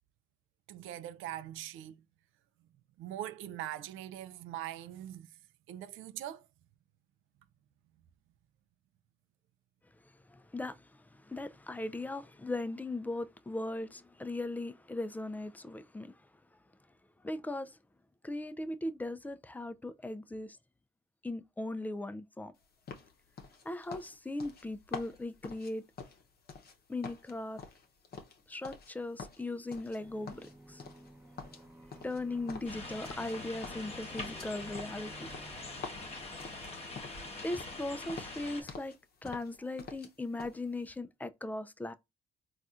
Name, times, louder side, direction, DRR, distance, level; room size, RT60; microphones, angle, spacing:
voice 1, 0.7-2.0 3.0-5.3 5.7-6.5, right 12 dB, 85° right, 0.4 m, -42 dB
voice 2, 10.3-16.2 17.2-17.8 18.2-20.6 21.2-22.5 23.6-25.8 26.9-27.6 28.5-30.8 32.0-35.3 37.4-38.9 39.2-41.9, left 2 dB, 10° left, 0.3 m, -38 dB
sound 1, 22.9-26.8 27.0-28.9 29.2-30.0 30.3-31.1 31.4-33.4 33.6-37.3 37.5-37.8 38.1-39.0 39.2-40.1 40.4-40.6, left 4 dB, 50° left, 0.7 m, -47 dB
Aircraft, 30.0-37.3, right 2 dB, 10° right, 0.7 m, -54 dB
sound 2, 32.6-38.6, left 2 dB, 30° left, 1.1 m, -44 dB
4.1 x 2.4 x 2.4 m
cardioid pair, 90°, 20 cm